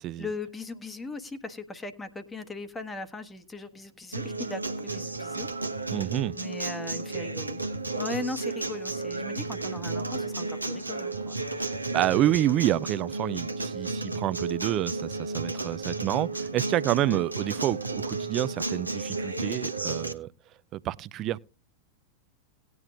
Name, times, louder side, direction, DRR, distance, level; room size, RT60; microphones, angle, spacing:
voice 1, 0.2-5.5 6.3-7.6 7.9-11.4 17.0-17.2, left 2 dB, 15° left, 1.2 m, -38 dB
Acoustic guitar, 4.1-20.1, right 3 dB, 85° right, 1.0 m, -33 dB
voice 2, 5.9-6.4 11.6-20.3 20.7-21.4, right 13 dB, 35° right, 0.5 m, -28 dB
18.5 x 9.4 x 2.4 m
figure-of-eight pair, 90°, 0 cm